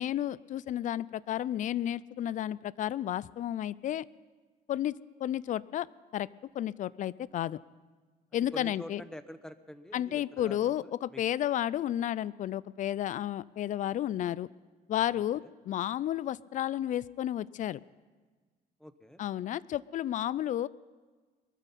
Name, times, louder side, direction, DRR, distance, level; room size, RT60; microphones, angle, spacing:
voice 1, 0.0-4.0 4.7-5.9 6.1-6.3 6.5-7.6 8.3-9.0 9.9-14.5 14.9-17.8 19.2-20.7, left 12 dB, 50° left, 21 dB, 0.4 m, -32 dB
voice 2, 8.5-11.2 15.1-15.2 18.8-19.2, equal, 5° left, 11 dB, 0.8 m, -46 dB
22.0 x 13.5 x 4.2 m, 1.4 s
cardioid pair, 110°, 17 cm